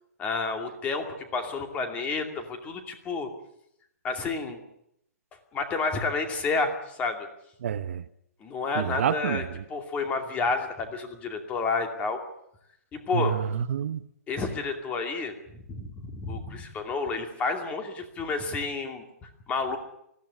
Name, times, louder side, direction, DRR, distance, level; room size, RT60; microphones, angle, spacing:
voice 1, 0.2-3.3 4.0-4.6 5.5-7.2 8.4-9.4 9.7-12.2 12.9-13.4 14.3-19.8, left 4 dB, 15° left, 2.5 m, -30 dB
voice 2, 7.6-8.0 8.7-9.6 13.1-14.0, right 8 dB, 55° right, 0.9 m, -28 dB
20.5 x 15.5 x 9.8 m
hypercardioid pair, 160°, 9 cm